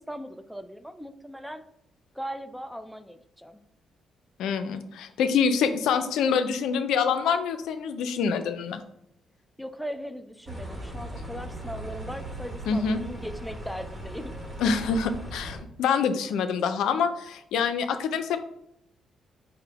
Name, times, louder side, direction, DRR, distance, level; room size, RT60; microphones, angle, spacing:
voice 1, 0.0-1.6 2.2-3.6 9.6-14.3, equal, ahead, 10 dB, 0.3 m, -38 dB
voice 2, 4.4-8.8 12.7-13.0 14.6-18.4, left 6 dB, 85° left, 8 dB, 0.4 m, -26 dB
sound 1, 10.5-15.6, right 1 dB, 20° right, 1.1 m, -38 dB
4.8 x 2.1 x 4.5 m, 0.77 s
cardioid pair, 90°, 0 cm